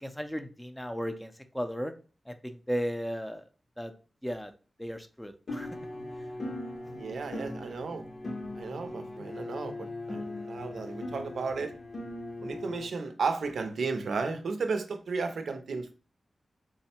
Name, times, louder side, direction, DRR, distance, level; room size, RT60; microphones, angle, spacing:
voice 1, 0.0-1.9 2.3-3.4 3.8-3.9 4.2-4.5 4.8-5.7, equal, 5° left, 0.5 m, -35 dB
sound 1, 5.5-12.9, left 2 dB, 65° left, 0.8 m, -39 dB
voice 2, 7.0-8.1 8.6-11.8 12.4-15.9, right 4 dB, 85° right, 0.5 m, -34 dB
3.6 x 2.1 x 4.2 m
wide cardioid pair, 80°, 0 cm